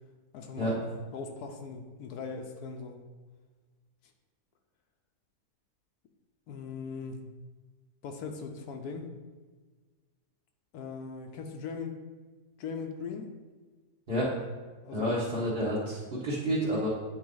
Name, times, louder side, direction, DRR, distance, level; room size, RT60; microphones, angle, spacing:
voice 1, 0.3-3.0 6.5-7.3 8.0-9.1 10.7-11.9 12.6-13.3 14.8-15.2, left 5 dB, 80° left, 5 dB, 1.2 m, -39 dB
voice 2, 14.9-16.9, equal, 35° right, -11 dB, 1.6 m, -29 dB
9.1 x 3.9 x 3.9 m, 1.4 s
omnidirectional pair, 1.6 m